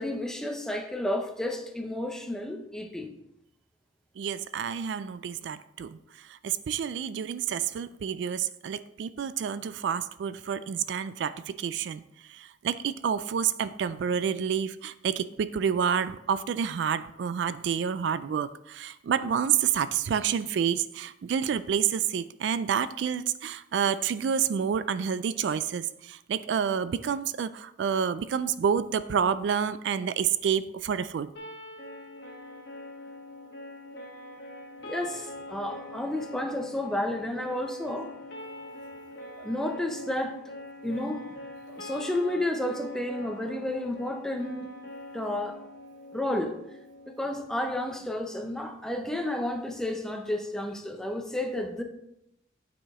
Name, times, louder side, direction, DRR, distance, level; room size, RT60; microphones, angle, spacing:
voice 1, 0.0-3.1 34.8-38.1 39.4-40.4 40.8-41.2 41.8-44.7 45.1-45.6 46.1-46.5 47.1-51.8, left 1 dB, 5° left, 4 dB, 0.6 m, -31 dB
voice 2, 4.2-12.0 12.3-31.3, right 7 dB, 65° right, 14 dB, 0.3 m, -29 dB
sound 1, 31.4-47.4, left 2 dB, 65° left, 2.0 m, -43 dB
9.0 x 4.9 x 3.6 m, 0.82 s
head